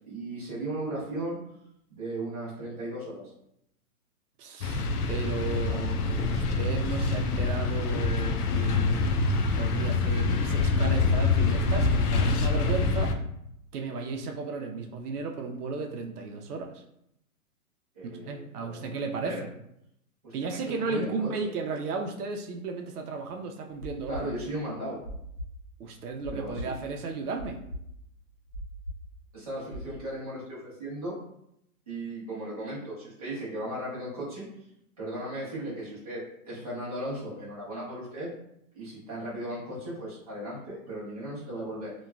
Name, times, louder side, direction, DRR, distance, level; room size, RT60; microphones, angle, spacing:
voice 1, 0.1-1.4 1.9-3.2 5.5-5.8 6.3-6.6 17.9-19.4 20.2-20.6 20.9-21.5 24.1-25.0 26.3-26.7 29.3-31.1 31.9-34.4 35.0-38.3 38.7-41.9, right 1 dB, 25° right, -9 dB, 0.7 m, -36 dB
voice 2, 4.4-9.1 9.6-13.1 13.7-16.8 18.0-19.5 20.3-24.3 25.8-27.6, right 4 dB, 80° right, 3 dB, 0.6 m, -34 dB
sound 1, 4.6-13.1, left 3 dB, 80° left, 0.5 m, -25 dB
sound 2, 23.8-29.9, equal, 55° left, 0.9 m, -40 dB
2.9 x 2.2 x 2.3 m, 0.77 s
hypercardioid pair, 180°, 45 cm